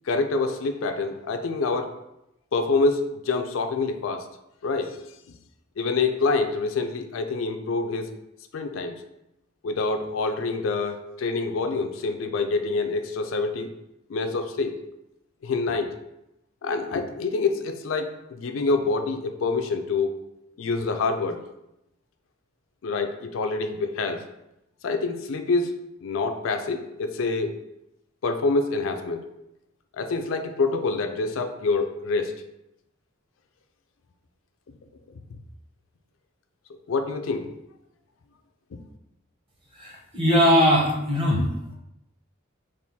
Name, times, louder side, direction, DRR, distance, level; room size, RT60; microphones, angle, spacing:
voice 1, 0.1-1.9 2.5-4.2 4.6-5.0 5.8-8.1 8.5-9.0 9.6-13.7 14.1-14.8 15.4-15.9 16.6-20.2 20.6-21.4 22.8-24.3 24.8-25.7 26.0-27.6 28.2-29.3 30.0-32.3 36.7-37.5 38.7-38.8, left 3 dB, 75° left, 7 dB, 0.4 m, -26 dB
voice 2, 39.7-41.5, equal, 25° right, -2 dB, 1.0 m, -20 dB
3.7 x 2.5 x 4.0 m, 0.86 s
head